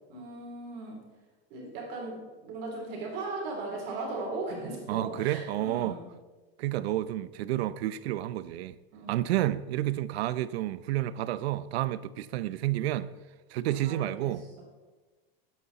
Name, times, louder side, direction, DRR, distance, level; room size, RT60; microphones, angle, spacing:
voice 1, 0.1-1.0 1.5-4.8 5.0-6.0 8.9-9.2 13.8-14.3, right 2 dB, 40° right, 3.5 m, -37 dB
voice 2, 4.9-6.0 6.6-8.8 9.1-13.1 13.5-14.5, right 14 dB, 80° right, 0.8 m, -30 dB
21.5 x 8.5 x 4.1 m
supercardioid pair, 180°, 31 cm